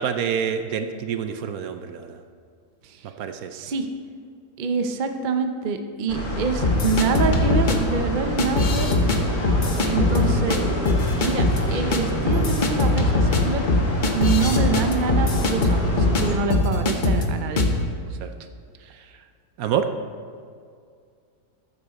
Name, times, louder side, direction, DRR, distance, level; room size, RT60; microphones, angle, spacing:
voice 1, 0.0-2.2 3.2-3.6 18.2-18.3 19.6-19.9, right 8 dB, 70° right, 8 dB, 1.0 m, -27 dB
voice 2, 3.5-3.9 4.6-8.9 9.8-10.6 11.2-13.7 14.1-17.7, right 5 dB, 50° right, 6 dB, 0.5 m, -26 dB
sound 1, 6.1-16.4, equal, 65° left, 2.4 m, -28 dB
sound 2, 6.6-7.8 8.4-9.2 9.4-10.6 10.9-11.6 11.9-12.0 12.3-16.2 16.5-17.3 17.6-17.8, left 3 dB, 40° left, 0.8 m, -21 dB
13.0 x 8.7 x 4.1 m, 2.2 s
omnidirectional pair, 1.7 m